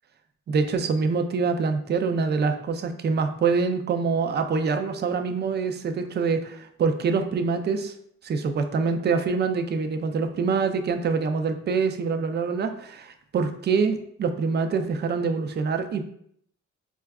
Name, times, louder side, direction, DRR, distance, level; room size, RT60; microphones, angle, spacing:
voice 1, 0.5-7.9 8.2-16.0, right 5 dB, 35° right, 7 dB, 0.4 m, -25 dB
4.4 x 2.3 x 2.2 m, 0.68 s
cardioid pair, 90°, 30 cm